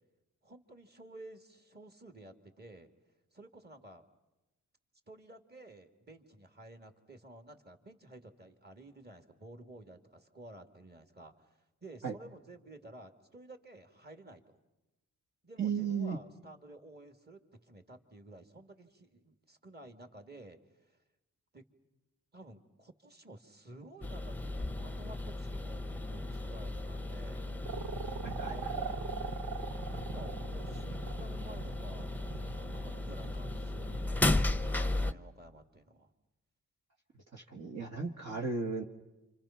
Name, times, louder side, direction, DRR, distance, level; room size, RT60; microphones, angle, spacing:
voice 1, 0.4-2.9 3.3-4.0 5.1-14.6 15.4-21.0 21.5-21.6 22.3-24.4 24.7-27.4 28.3-29.1 29.9-32.1 32.5-36.1, right 1 dB, 30° right, 6 dB, 2.4 m, -53 dB
voice 2, 15.6-16.2 28.2-28.7 37.3-38.8, right 5 dB, 50° right, 0 dB, 1.8 m, -35 dB
sound 1, 24.0-35.1, left 2 dB, 5° left, 0.9 m, -35 dB
sound 2, 27.6-34.7, right 8 dB, 85° right, 0.8 m, -42 dB
28.5 x 26.5 x 5.9 m, 1.0 s
cardioid pair, 55°, 34 cm